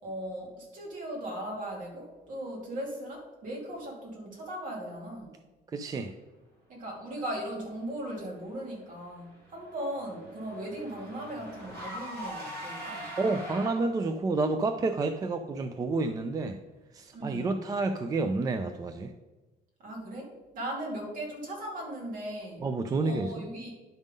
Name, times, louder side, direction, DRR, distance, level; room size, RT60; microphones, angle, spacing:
voice 1, 0.0-5.4 6.7-13.1 17.1-17.7 19.8-22.7 23.0-23.7, right 1 dB, 55° right, -2 dB, 2.5 m, -38 dB
voice 2, 5.7-6.2 13.2-16.6 16.9-19.1 22.6-23.3, right 3 dB, 20° right, 8 dB, 0.3 m, -29 dB
Car / Engine, 9.1-14.1, equal, 70° right, 2.5 m, -42 dB
10.5 x 3.6 x 5.2 m, 1.1 s
cardioid pair, 160°, 17 cm